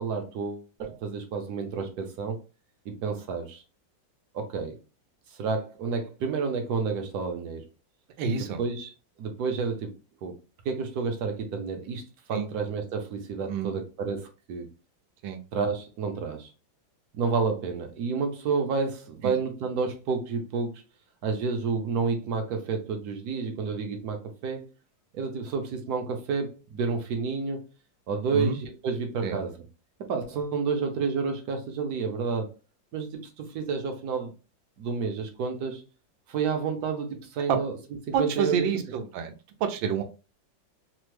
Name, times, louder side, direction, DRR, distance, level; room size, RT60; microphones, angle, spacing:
voice 1, 0.0-2.4 2.9-3.6 4.3-4.8 5.3-7.6 8.4-8.9 9.2-9.9 10.2-10.3 10.6-14.7 15.5-16.5 17.1-20.8 21.2-24.7 25.1-27.6 28.1-29.5 30.1-32.5 32.9-34.3 34.8-35.8 36.3-37.8 38.1-38.7, right 5 dB, 65° right, 1.0 m, -30 dB
voice 2, 8.2-8.6 12.3-12.5 13.5-13.7 15.2-15.4 19.2-19.3 28.3-28.6 29.2-29.4 37.5-37.6 38.1-39.3 39.6-40.0, right 6 dB, 85° right, 1.4 m, -28 dB
3.4 x 2.0 x 3.1 m
omnidirectional pair, 2.1 m